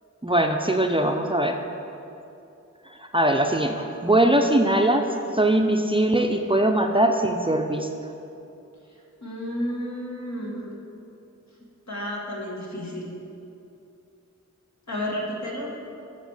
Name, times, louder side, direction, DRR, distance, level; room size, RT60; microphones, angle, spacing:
voice 1, 0.2-1.6 3.0-5.1 5.3-7.9, right 1 dB, 20° right, 3 dB, 0.5 m, -21 dB
voice 2, 9.2-10.7 11.9-13.2 14.9-15.7, equal, 65° left, -3 dB, 1.8 m, -31 dB
8.1 x 6.0 x 6.5 m, 2.7 s
wide cardioid pair, 65°, 30 cm